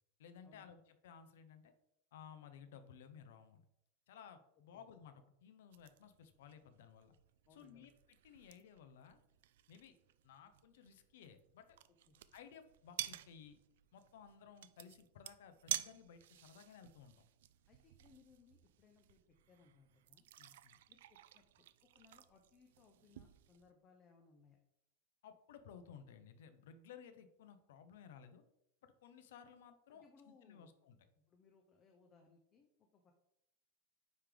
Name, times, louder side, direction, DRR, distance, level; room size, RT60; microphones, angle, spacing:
voice 1, 0.2-1.7 2.1-3.6 4.1-7.1 7.5-9.2 9.7-9.9 10.2-11.8 12.3-13.6 13.9-17.2 20.4-20.8 25.2-28.4 28.8-31.0, left 7 dB, 70° left, 9 dB, 0.8 m, -58 dB
sound 1, 5.7-23.7, right 13 dB, 70° right, 0.3 m, -51 dB
voice 2, 7.5-7.9 12.1-12.2 17.7-19.2 19.5-20.2 20.9-21.4 21.9-24.6 29.9-30.7 31.3-33.1, left 5 dB, 20° left, 4 dB, 0.6 m, -67 dB
9.4 x 3.4 x 3.8 m, 0.80 s
supercardioid pair, 175°, 0 cm